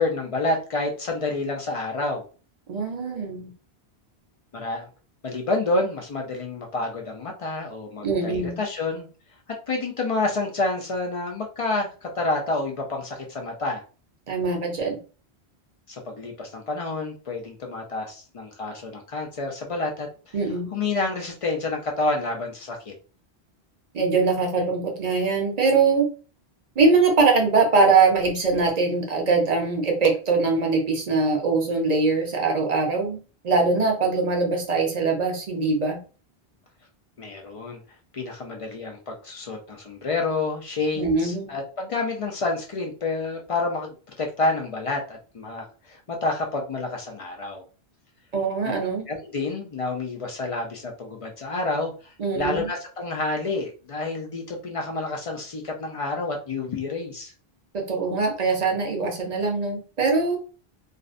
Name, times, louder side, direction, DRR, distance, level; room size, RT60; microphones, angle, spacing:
voice 1, 0.0-2.2 4.5-4.9 5.2-9.1 9.7-13.8 15.9-20.4 20.7-22.9 37.2-37.8 38.1-47.6 49.1-57.3, left 3 dB, 60° left, 1 dB, 0.3 m, -29 dB
voice 2, 2.7-3.5 8.0-8.6 14.3-15.0 20.3-20.7 23.9-26.1 26.8-33.2 33.4-36.0 40.9-41.5 48.3-49.0 52.2-52.7 57.7-60.4, right 4 dB, 45° right, 1 dB, 0.6 m, -22 dB
2.5 x 2.0 x 2.4 m, 0.37 s
omnidirectional pair, 1.1 m